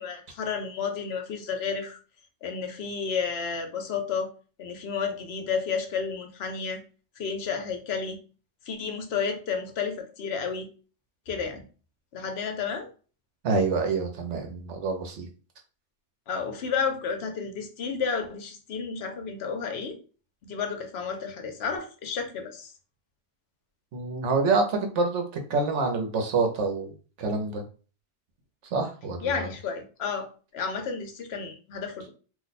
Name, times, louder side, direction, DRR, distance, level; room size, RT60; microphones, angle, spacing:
voice 1, 0.0-2.0 2.4-4.3 4.6-6.8 7.2-8.2 8.7-10.7 11.3-11.6 12.1-12.9 16.3-20.0 20.4-22.7 29.2-30.3 30.5-32.1, left 6 dB, 65° left, 5 dB, 0.9 m, -31 dB
voice 2, 13.4-15.3 23.9-25.2 25.5-26.9 27.2-27.6 28.7-29.5, right 3 dB, 80° right, 4 dB, 1.1 m, -26 dB
2.6 x 2.2 x 4.0 m, 0.37 s
omnidirectional pair, 1.2 m